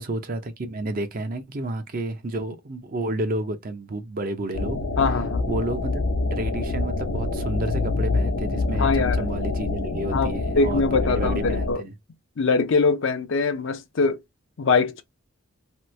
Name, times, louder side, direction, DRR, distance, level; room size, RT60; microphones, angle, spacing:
voice 1, 0.0-4.8 5.5-6.0 6.3-11.9, right 2 dB, 40° right, 0.5 m, -31 dB
sound 1, 4.5-11.7, left 3 dB, 90° left, 0.8 m, -26 dB
voice 2, 5.0-5.4 8.8-9.3 10.1-11.8 12.4-14.2 14.6-15.0, left 4 dB, 60° left, 0.5 m, -23 dB
2.9 x 2.3 x 3.1 m
head